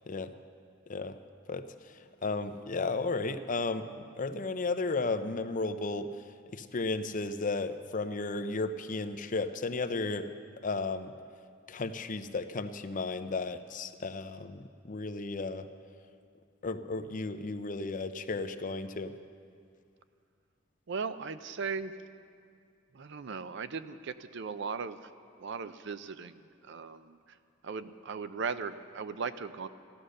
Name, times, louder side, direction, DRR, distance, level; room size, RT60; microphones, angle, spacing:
voice 1, 1.5-6.2 6.5-10.3 10.6-11.1 11.7-15.7 16.6-19.1, left 3 dB, 40° left, 10 dB, 0.6 m, -34 dB
voice 2, 20.9-22.0 22.9-25.1 25.4-27.4 27.6-29.7, right 5 dB, 65° right, 12 dB, 0.5 m, -38 dB
14.5 x 11.5 x 6.5 m, 2.3 s
head